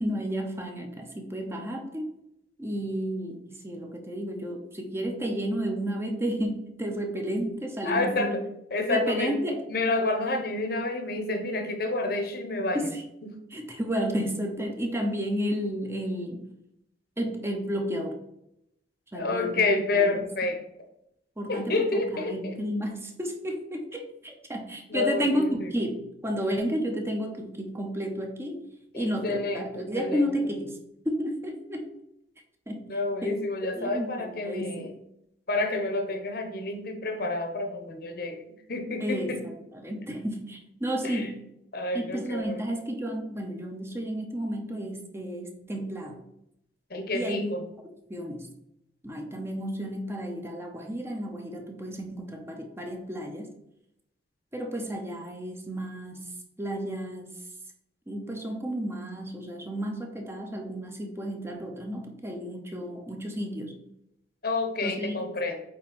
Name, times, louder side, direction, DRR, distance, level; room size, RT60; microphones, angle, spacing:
voice 1, 0.0-2.1 2.6-8.4 8.9-9.6 12.7-13.0 13.5-16.5 17.2-18.2 19.1-20.3 21.4-28.7 28.9-30.8 31.0-31.9 32.7-34.9 39.0-41.4 41.9-46.2 47.1-47.5 48.1-48.5 49.0-53.5 54.5-56.2 56.6-57.3 58.1-63.8 64.8-65.3, equal, 15° right, 2 dB, 0.9 m, -32 dB
voice 2, 7.8-8.3 8.7-9.3 9.7-12.9 19.1-20.6 21.5-22.5 24.9-25.7 28.9-30.2 32.9-34.9 35.5-38.4 38.7-39.4 41.0-41.3 41.7-42.6 46.9-47.6 54.7-55.0 64.4-65.6, left 2 dB, 55° left, 5 dB, 1.1 m, -29 dB
8.7 x 3.6 x 4.4 m, 0.80 s
head